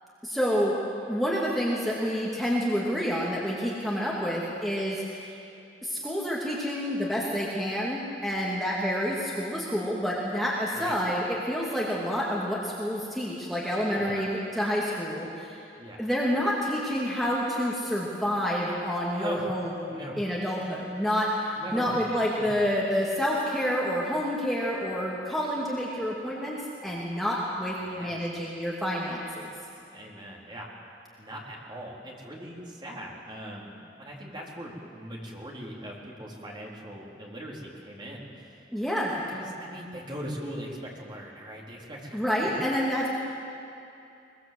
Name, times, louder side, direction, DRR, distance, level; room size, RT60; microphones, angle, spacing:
voice 1, 0.2-0.7 1.1-5.4 5.8-15.6 16.0-26.6 26.8-29.5 38.7-39.2 42.1-43.1, equal, ahead, -6 dB, 2.6 m, -28 dB
voice 2, 13.9-14.3 15.8-16.1 19.2-19.5 19.9-20.2 21.6-22.0 22.4-22.5 27.8-28.2 29.9-30.7 31.2-33.7 34.0-38.7 39.3-42.5 43.0-43.1, right 1 dB, 25° right, -3 dB, 4.2 m, -40 dB
22.5 x 22.5 x 7.8 m, 2.7 s
head